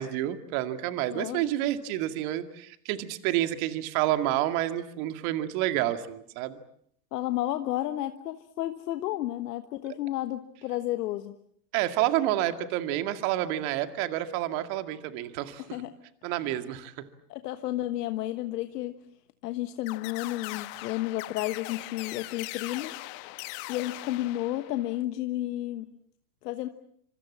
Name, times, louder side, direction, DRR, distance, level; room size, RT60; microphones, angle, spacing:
voice 1, 0.0-6.6 9.9-10.0 11.7-15.6 16.2-17.1, right 13 dB, 55° right, 9 dB, 2.3 m, -29 dB
voice 2, 1.1-1.4 7.1-11.3 15.6-15.9 17.3-19.0 19.4-23.0 23.7-25.8 26.4-26.7, left 14 dB, 70° left, 9 dB, 1.4 m, -32 dB
sound 1, 19.9-25.0, left 22 dB, 50° left, 1.1 m, -40 dB
26.0 x 25.0 x 7.3 m, 0.69 s
hypercardioid pair, 110°, 49 cm